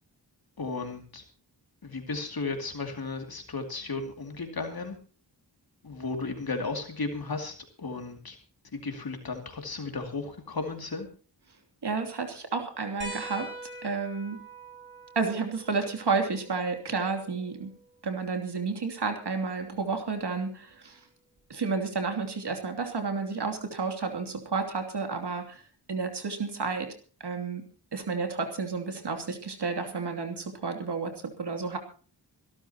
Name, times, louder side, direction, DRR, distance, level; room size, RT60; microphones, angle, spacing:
voice 1, 0.6-1.2 1.8-5.0 5.8-8.4 8.7-11.1, left 3 dB, 55° left, 4 dB, 2.6 m, -34 dB
voice 2, 11.8-13.5 13.8-14.4 15.1-17.7 18.0-21.0 21.5-25.6 25.9-26.9 27.2-27.6 27.9-31.8, right 4 dB, 70° right, 5 dB, 2.9 m, -31 dB
sound 1, 13.0-18.1 19.6-19.7 21.4-21.5, right 1 dB, 25° right, 7.3 m, -44 dB
26.5 x 12.5 x 2.9 m, 0.38 s
wide cardioid pair, 80°, 43 cm